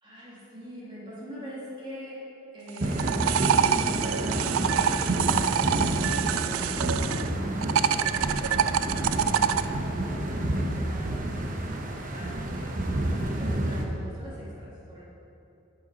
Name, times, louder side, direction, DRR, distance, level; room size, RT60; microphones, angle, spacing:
voice 1, 0.0-2.2 2.5-3.3 4.0-6.0 6.3-12.8 13.2-15.0, equal, 20° right, -7 dB, 1.9 m, -43 dB
sound 1, 2.7-7.3 7.6-9.6, right 8 dB, 75° right, 0.3 m, -26 dB
sound 2, 2.8-13.8, right 1 dB, 40° right, 0.8 m, -29 dB
8.7 x 6.9 x 5.1 m, 2.8 s
head